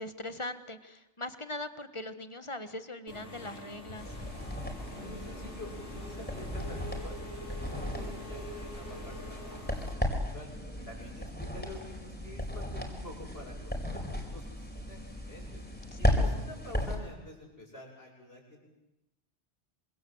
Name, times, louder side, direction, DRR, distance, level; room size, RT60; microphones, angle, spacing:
voice 1, 0.0-4.1 11.0-11.1 15.8-16.2, left 1 dB, 25° left, 11 dB, 1.5 m, -41 dB
Engine / Mechanisms, 3.1-9.9, left 1 dB, 90° left, 5.2 m, -45 dB
sound 1, 4.0-17.0, left 1 dB, 10° left, 4.7 m, -35 dB
voice 2, 4.9-10.5 10.9-15.6 16.0-18.6, left 1 dB, 60° left, 0 dB, 8.1 m, -48 dB
26.5 x 26.0 x 7.9 m, 0.97 s
omnidirectional pair, 1.1 m